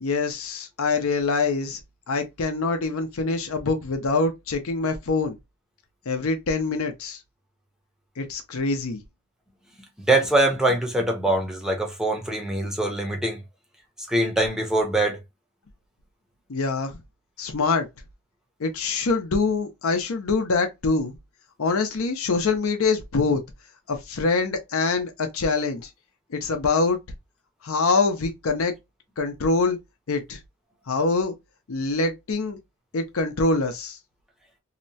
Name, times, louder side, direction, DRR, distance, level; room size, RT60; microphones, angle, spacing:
voice 1, 0.0-1.8 2.1-5.4 6.1-7.2 8.2-9.0 16.5-17.0 17.4-17.9 18.6-21.1 21.6-23.4 23.9-25.9 26.3-27.0 27.6-28.7 29.2-29.8 30.1-30.4 30.9-31.3 31.7-32.6 32.9-34.0, left 3 dB, 70° left, 0.6 m, -24 dB
voice 2, 10.0-13.4 14.1-15.2, right 1 dB, 5° right, 0.6 m, -23 dB
2.8 x 2.1 x 2.6 m
head